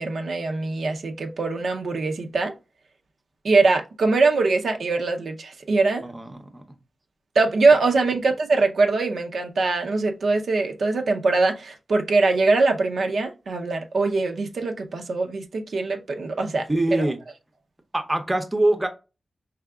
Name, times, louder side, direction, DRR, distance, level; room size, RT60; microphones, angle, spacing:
voice 1, 0.0-2.5 3.4-6.0 7.3-16.7 16.9-17.1, right 3 dB, 75° right, 0.6 m, -22 dB
voice 2, 6.0-6.6 16.7-17.2 17.9-18.9, right 1 dB, 15° right, 0.6 m, -23 dB
4.7 x 3.3 x 2.3 m
wide cardioid pair, 135°, 0 cm